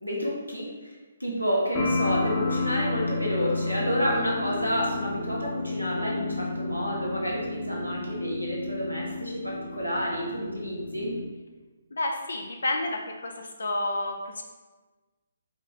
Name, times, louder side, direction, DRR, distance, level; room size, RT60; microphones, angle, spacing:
voice 1, 0.0-11.1, equal, 90° left, -4 dB, 1.3 m, -29 dB
sound 1, 1.7-11.2, left 3 dB, 25° left, 0.7 m, -31 dB
voice 2, 11.9-14.4, left 2 dB, 60° left, 3 dB, 0.5 m, -30 dB
4.8 x 2.5 x 4.0 m, 1.2 s
figure-of-eight pair, 135°, 0 cm